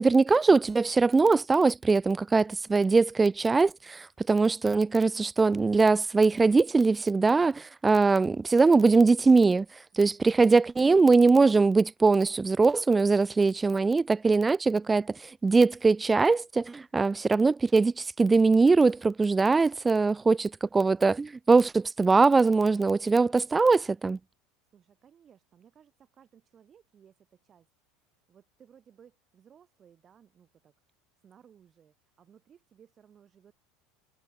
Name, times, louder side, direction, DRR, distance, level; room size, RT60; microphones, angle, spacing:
voice 1, 0.0-9.7 10.0-15.2 15.4-24.2, right 4 dB, 15° right, 0.3 m, -22 dB
voice 2, 24.7-30.7 31.2-33.5, right 8 dB, 35° right, 6.8 m, -60 dB
figure-of-eight pair, 75°, 0 cm